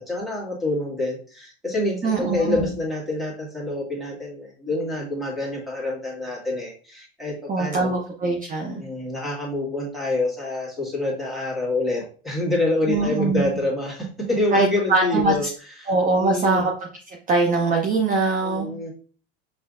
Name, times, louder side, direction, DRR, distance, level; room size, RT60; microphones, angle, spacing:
voice 1, 0.0-7.9 8.8-15.5 15.8-16.7 18.4-18.9, left 2 dB, ahead, -4 dB, 2.0 m, -27 dB
voice 2, 2.0-2.7 7.5-8.8 12.9-13.4 14.5-15.5 15.9-16.7 17.3-18.7, right 3 dB, 25° right, 0 dB, 0.8 m, -22 dB
5.6 x 3.3 x 2.6 m, 0.40 s
supercardioid pair, 120°, 34 cm